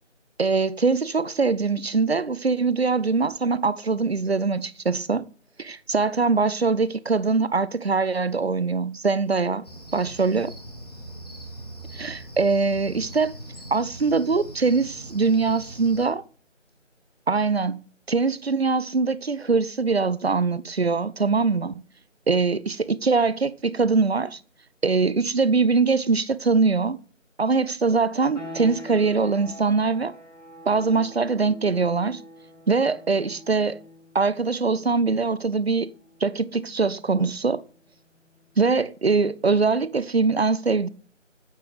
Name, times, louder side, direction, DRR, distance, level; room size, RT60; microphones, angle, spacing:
voice 1, 0.4-5.2 5.6-9.6 9.9-10.5 11.9-13.3 13.7-16.2 17.3-21.8 22.3-24.4 24.8-27.0 27.4-30.1 30.7-32.2 32.7-33.8 34.1-35.9 36.2-37.6 38.6-40.9, right 4 dB, 55° right, 0.5 m, -22 dB
Cricket, 9.6-16.1, right 1 dB, 30° left, 1.4 m, -41 dB
sound 1, 28.3-38.9, equal, 70° left, 3.1 m, -45 dB
8.9 x 6.0 x 3.4 m
figure-of-eight pair, 170°, 38 cm